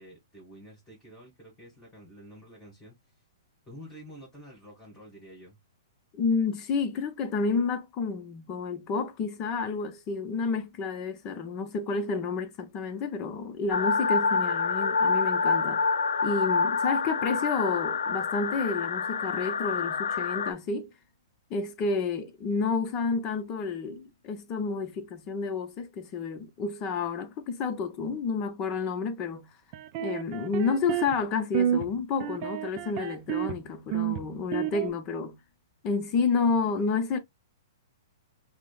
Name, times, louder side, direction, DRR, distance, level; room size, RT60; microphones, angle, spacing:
voice 1, 0.0-3.2 3.7-5.6, equal, 10° left, 2.5 m, -49 dB
voice 2, 6.1-15.8 16.2-20.9 21.5-29.5 30.0-35.4 35.8-37.2, left 4 dB, 30° left, 0.7 m, -30 dB
sound 1, 13.7-20.5, left 5 dB, 85° left, 0.4 m, -27 dB
sound 2, 29.7-31.2 31.5-31.9 32.2-33.6 33.9-34.9, right 11 dB, 35° right, 0.4 m, -30 dB
5.9 x 2.1 x 2.3 m
hypercardioid pair, 145°, 2 cm